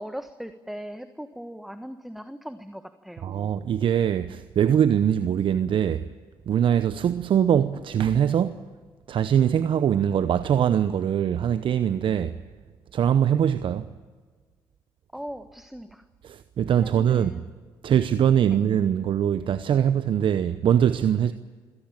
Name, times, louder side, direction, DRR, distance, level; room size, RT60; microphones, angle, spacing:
voice 1, 0.0-3.3 15.1-16.0 16.8-17.5 18.5-18.6, equal, ahead, 1.4 m, -39 dB
voice 2, 3.2-6.1 6.5-8.6 9.1-12.4 12.9-13.9 16.2-17.3 17.8-21.3, right 9 dB, 60° right, 0.8 m, -22 dB
26.0 x 17.5 x 8.9 m
hypercardioid pair, 50°, 10 cm